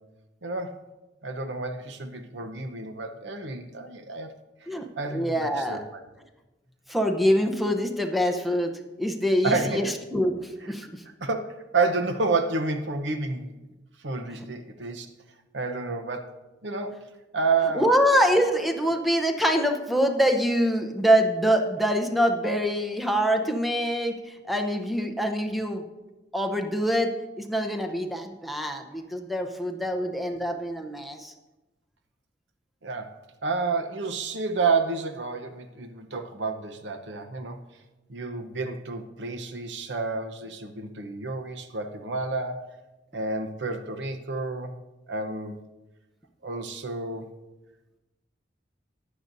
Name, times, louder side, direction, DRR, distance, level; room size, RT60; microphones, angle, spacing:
voice 1, 0.4-0.8 1.2-4.3 4.6-4.7 5.0-6.0 9.4-9.9 11.2-13.5 14.0-15.1 15.5-16.4 16.6-17.9 32.8-33.1 33.4-37.6 38.1-42.7 43.1-44.7 45.1-45.6 46.4-47.3, right 3 dB, 90° right, 7 dB, 0.9 m, -30 dB
voice 2, 5.1-5.8 6.9-11.0 14.4-14.5 17.7-25.8 26.3-27.1 27.4-31.3, equal, ahead, 4 dB, 0.8 m, -25 dB
15.0 x 9.8 x 2.7 m, 1.1 s
head